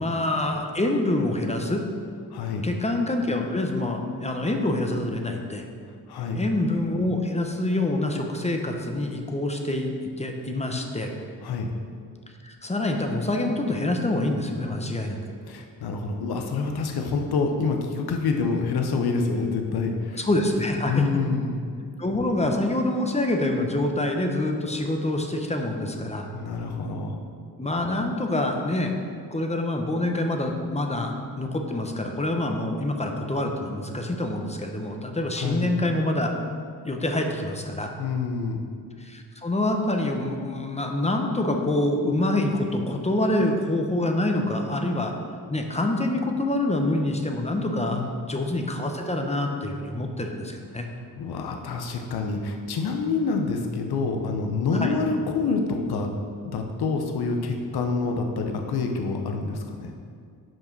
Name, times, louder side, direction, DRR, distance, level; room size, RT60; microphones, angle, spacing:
voice 1, 0.0-1.8 2.6-5.6 6.3-11.1 12.4-15.2 20.1-21.4 22.0-26.3 27.6-28.9 29.3-36.3 36.8-37.9 39.0-45.1 45.5-50.9 54.8-55.0, left 1 dB, 15° left, 3 dB, 0.9 m, -26 dB
voice 2, 2.3-2.6 6.1-6.4 11.4-11.7 15.5-20.2 20.9-21.6 26.3-27.2 35.4-35.7 38.0-38.6 47.9-48.3 51.2-56.1 56.4-59.9, left 4 dB, 70° left, 4 dB, 0.9 m, -27 dB
6.1 x 4.8 x 6.0 m, 2.2 s
cardioid pair, 75°, 39 cm